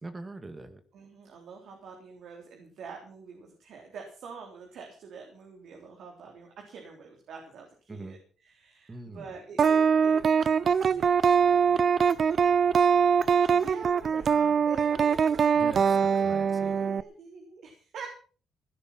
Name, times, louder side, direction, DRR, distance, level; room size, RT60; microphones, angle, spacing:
voice 1, 0.0-0.8 7.9-8.2 8.9-9.3 15.6-15.9 16.2-16.8, right 2 dB, 25° right, 9 dB, 1.9 m, -42 dB
voice 2, 0.9-15.5 15.7-16.3 16.6-18.1, right 5 dB, 70° right, 2 dB, 3.7 m, -46 dB
sound 1, 9.6-17.0, right 6 dB, 50° right, 0.6 m, -23 dB
16.5 x 10.5 x 5.9 m, 0.41 s
cardioid pair, 90°, 0 cm